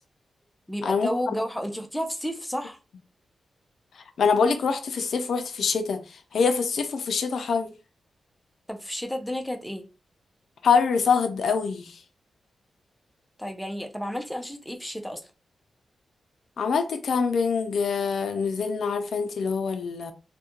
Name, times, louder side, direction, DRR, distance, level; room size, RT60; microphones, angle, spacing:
voice 1, 0.7-2.8 8.7-9.8 13.4-15.2, equal, 5° left, 0.4 m, -31 dB
voice 2, 4.2-6.0 6.3-7.7 10.6-11.9 16.6-20.1, left 5 dB, 75° left, 0.3 m, -24 dB
2.3 x 2.2 x 2.8 m
wide cardioid pair, 120°, 0 cm